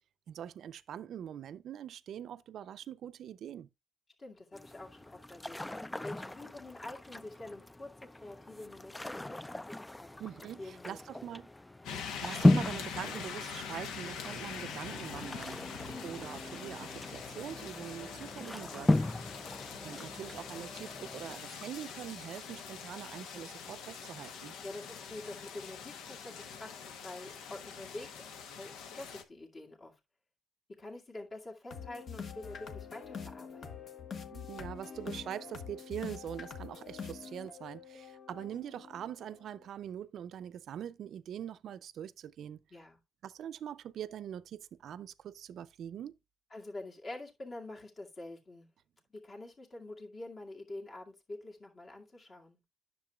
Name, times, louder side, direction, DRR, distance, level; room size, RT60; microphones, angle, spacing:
voice 1, 0.3-3.7 10.2-11.5 12.2-19.2 19.8-24.6 34.3-42.6 43.2-46.1, right 10 dB, 70° right, 0.5 m, -43 dB
voice 2, 4.2-5.6 6.0-9.7 10.0-10.2 10.6-11.0 15.6-16.1 24.6-28.2 28.6-30.0 30.8-33.9 42.7-43.0 46.5-48.7 49.1-52.6, left 2 dB, 35° left, 2.1 m, -47 dB
sound 1, 4.5-21.4, left 2 dB, 10° left, 0.3 m, -35 dB
sound 2, 11.8-29.2, left 6 dB, 90° left, 1.0 m, -44 dB
sound 3, 31.7-39.7, left 6 dB, 55° left, 1.2 m, -45 dB
10.0 x 6.7 x 2.3 m
cardioid pair, 90°, 0 cm